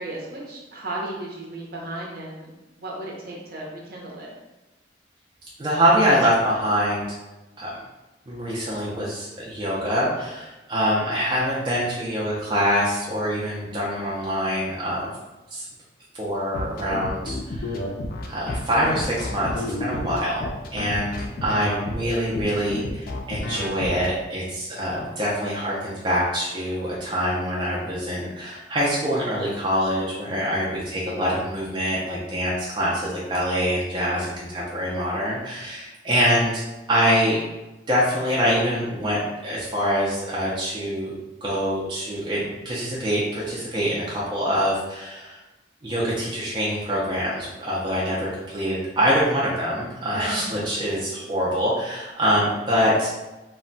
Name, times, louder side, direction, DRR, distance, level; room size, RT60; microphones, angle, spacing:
voice 1, 0.0-2.5 2.8-4.3 50.1-50.5 50.8-51.1, right 1 dB, 60° right, -3 dB, 0.8 m, -35 dB
voice 2, 5.6-7.0 7.6-7.7 8.3-15.1 15.5-15.7 16.1-17.8 18.3-20.5 20.7-36.6 36.9-37.4 37.9-41.1 41.4-45.4 45.8-53.1, equal, 25° right, -6 dB, 0.5 m, -24 dB
sound 1, 16.5-24.1, left 2 dB, 55° left, 0.4 m, -31 dB
2.2 x 2.1 x 3.8 m, 1.0 s
head